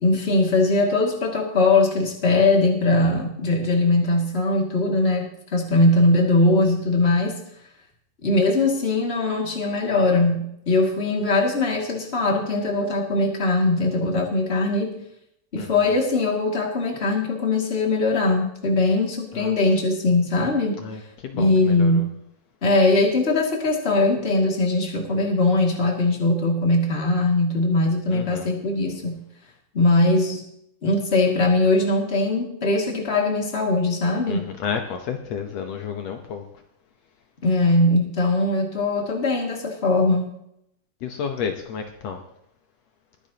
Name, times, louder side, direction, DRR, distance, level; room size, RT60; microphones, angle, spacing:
voice 1, 0.0-7.4 8.2-15.0 15.5-20.8 21.3-22.1 22.6-29.2 29.7-30.4 30.8-34.4 37.4-40.3, left 2 dB, 20° left, 1 dB, 1.7 m, -21 dB
voice 2, 20.8-22.1 28.1-28.5 34.3-36.4 41.0-42.2, left 7 dB, 90° left, 5 dB, 1.4 m, -31 dB
22.0 x 10.5 x 2.9 m, 0.75 s
omnidirectional pair, 4.4 m